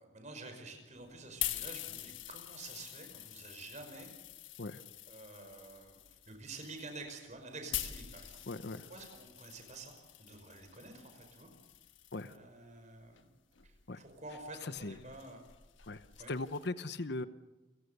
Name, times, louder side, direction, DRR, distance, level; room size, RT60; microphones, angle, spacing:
voice 1, 0.0-4.1 5.1-8.4 8.9-11.5 12.3-13.3 13.6-15.5 16.2-16.3, right 3 dB, 35° right, 5 dB, 5.2 m, -49 dB
sound 1, 1.0-12.4 13.1-16.7, left 13 dB, 75° left, 1.3 m, -45 dB
voice 2, 8.5-8.8 12.1-12.3 13.9-14.0 14.6-15.0 15.9-17.3, left 2 dB, 60° left, 12 dB, 0.9 m, -39 dB
30.0 x 16.5 x 6.9 m, 1.1 s
head